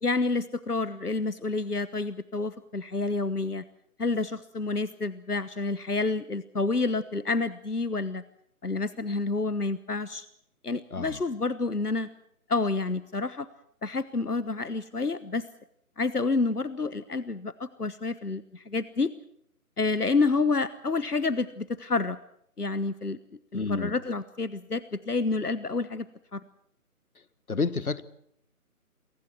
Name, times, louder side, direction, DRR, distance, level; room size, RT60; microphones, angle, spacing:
voice 1, 0.0-3.6 4.0-8.2 8.6-10.3 10.6-12.1 12.5-13.5 13.8-15.5 16.0-19.1 19.8-22.2 22.6-23.2 23.5-26.1 26.3-26.4, left 3 dB, 90° left, 15 dB, 1.3 m, -29 dB
voice 2, 10.9-11.2 23.5-23.9 27.5-28.0, left 4 dB, 70° left, 16 dB, 1.6 m, -29 dB
29.0 x 23.5 x 4.5 m, 0.71 s
figure-of-eight pair, 150°, 45 cm